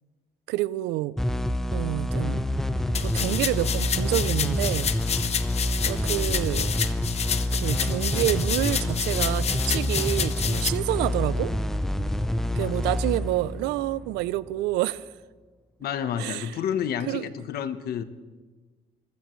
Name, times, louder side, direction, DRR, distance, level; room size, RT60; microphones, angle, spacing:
voice 1, 0.5-1.1 1.7-2.4 3.0-4.9 5.9-6.9 7.5-11.5 12.6-15.1 16.2-16.6 17.1-17.2, right 16 dB, 90° right, 18 dB, 0.5 m, -28 dB
sound 1, 1.2-14.5, left 1 dB, ahead, 0.5 m, -27 dB
sound 2, 2.9-10.7, left 7 dB, 40° left, 0.8 m, -29 dB
voice 2, 12.5-13.0 15.8-18.0, left 8 dB, 65° left, 11 dB, 1.0 m, -30 dB
25.5 x 15.5 x 3.1 m, 1.3 s
cardioid pair, 110°, 17 cm